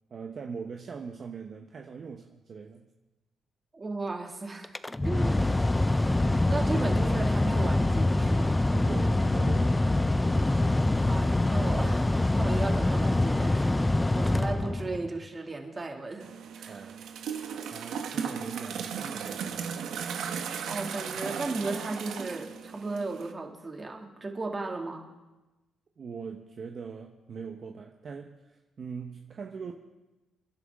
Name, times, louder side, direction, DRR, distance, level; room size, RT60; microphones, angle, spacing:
voice 1, 0.1-2.9 8.7-10.1 16.7-17.0 17.7-19.7 21.2-21.3 26.0-29.7, right 5 dB, 50° right, 2 dB, 1.1 m, -41 dB
voice 2, 3.7-4.7 5.0-5.7 6.5-8.6 11.0-16.3 16.6-16.9 20.7-25.1, right 3 dB, 30° right, 2 dB, 2.4 m, -35 dB
Mechanical fan, 4.6-15.2, left 2 dB, 15° left, 0.5 m, -25 dB
sound 1, 16.2-23.3, right 7 dB, 75° right, 1.2 m, -36 dB
29.0 x 11.0 x 3.7 m, 1.1 s
cardioid pair, 90°, 0 cm